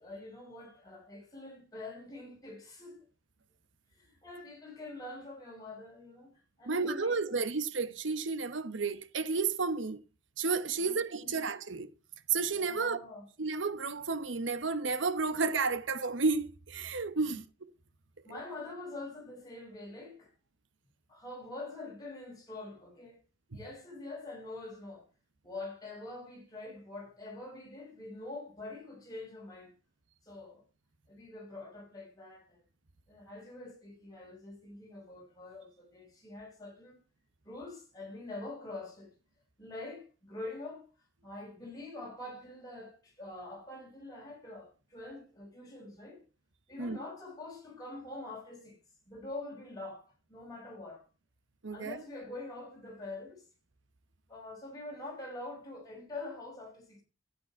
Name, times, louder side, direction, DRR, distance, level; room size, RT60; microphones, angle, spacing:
voice 1, 0.0-3.1 3.9-7.4 10.8-11.4 12.5-13.3 17.2-17.4 18.2-20.3 21.1-23.2 23.5-25.0 25.4-29.7 30.2-30.6 31.1-32.6 33.1-37.0 37.4-39.1 39.6-40.9 41.2-46.2 46.7-48.8 49.1-51.0 51.7-53.5 54.3-57.0, left 2 dB, 20° left, 5.8 m, -45 dB
voice 2, 6.7-10.0 10.4-11.9 12.3-13.0 13.4-17.4 46.8-47.0 51.6-52.0, right 4 dB, 75° right, 1.0 m, -32 dB
13.5 x 9.3 x 4.4 m
head